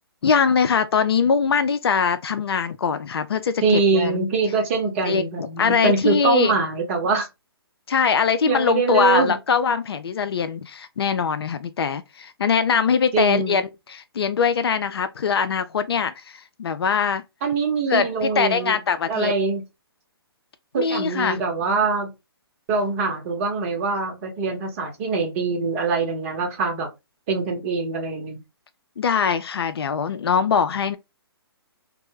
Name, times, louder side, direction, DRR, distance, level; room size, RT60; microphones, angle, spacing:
voice 1, 0.2-4.2 5.0-6.5 7.9-17.2 17.9-19.3 20.8-21.4 29.0-31.0, left 6 dB, 70° left, 0.4 m, -22 dB
voice 2, 3.6-7.3 8.1-8.2 8.4-9.4 13.1-13.6 17.4-18.8 19.1-19.6 20.7-22.1 22.7-26.9 27.3-28.4, right 4 dB, 35° right, 0.8 m, -23 dB
2.2 x 2.0 x 3.0 m
hypercardioid pair, 140°, 13 cm